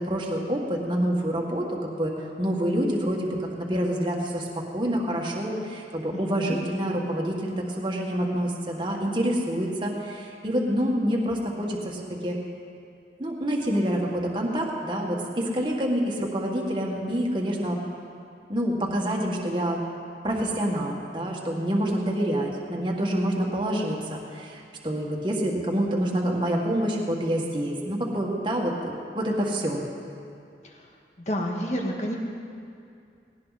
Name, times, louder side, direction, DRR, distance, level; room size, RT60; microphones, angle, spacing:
voice 1, 0.0-2.1 2.4-12.4 13.2-17.8 18.5-19.8 20.2-29.8, equal, 25° right, -2 dB, 1.8 m, -27 dB
voice 2, 6.1-6.6 30.6-30.9 31.3-32.2, equal, 40° left, 0 dB, 1.9 m, -30 dB
18.5 x 17.5 x 4.2 m, 2.4 s
head